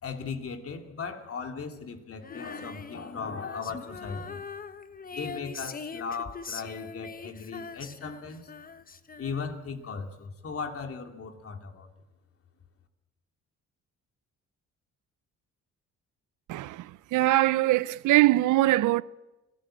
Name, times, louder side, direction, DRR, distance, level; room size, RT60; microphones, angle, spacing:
voice 1, 0.0-4.4 5.1-8.5 9.2-11.9, left 5 dB, 50° left, 2.8 m, -37 dB
Female singing, 2.2-9.7, left 5 dB, 30° left, 1.1 m, -42 dB
voice 2, 16.5-16.8 17.1-19.0, right 16 dB, 80° right, 0.7 m, -22 dB
26.5 x 17.5 x 7.6 m
cardioid pair, 90°, 30 cm